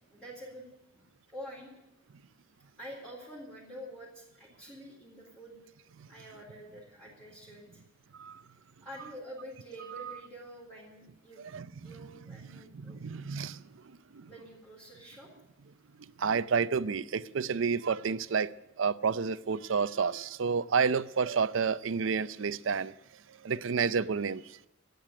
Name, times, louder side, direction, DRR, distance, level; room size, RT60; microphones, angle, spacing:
voice 1, 0.1-0.7 0.9-1.7 2.8-5.6 6.1-7.8 8.8-11.4 11.8-13.0 14.3-15.3, equal, 5° left, 3.8 m, -47 dB
voice 2, 11.5-11.9 12.3-13.7 14.1-14.3 16.0-18.5 18.8-22.9 23.3-24.6, right 5 dB, 65° right, 0.5 m, -30 dB
14.0 x 9.4 x 9.9 m
head